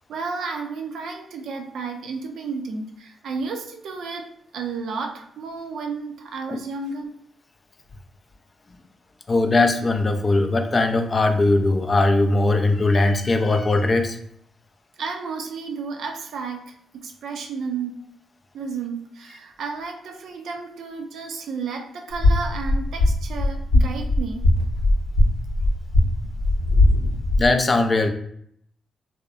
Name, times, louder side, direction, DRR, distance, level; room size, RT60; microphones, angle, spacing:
voice 1, 0.1-7.1 15.0-16.7 17.0-18.0 18.5-24.5, right 4 dB, 75° right, 4 dB, 0.4 m, -32 dB
voice 2, 9.3-14.2 27.4-28.1, left 2 dB, 35° left, 6 dB, 0.3 m, -20 dB
sound 1, 22.1-27.5, left 1 dB, 85° left, 0.9 m, -20 dB
2.7 x 2.0 x 2.4 m, 0.68 s
cardioid pair, 75°, 0 cm